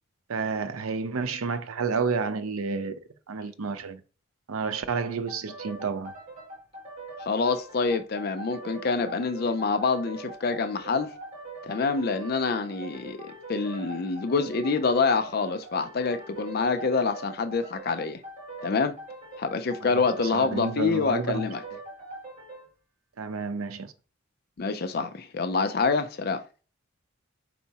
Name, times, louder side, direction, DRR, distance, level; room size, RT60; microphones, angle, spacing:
voice 1, 0.3-3.0 3.3-4.0 4.5-6.1 20.3-21.5 23.2-23.9, right 5 dB, 90° right, 0.6 m, -30 dB
sound 1, 5.3-22.7, right 2 dB, 35° right, 1.4 m, -42 dB
voice 2, 7.3-11.1 11.6-18.2 18.6-18.9 19.4-21.6 24.6-26.4, left 4 dB, 45° left, 0.4 m, -26 dB
4.5 x 4.1 x 2.8 m
head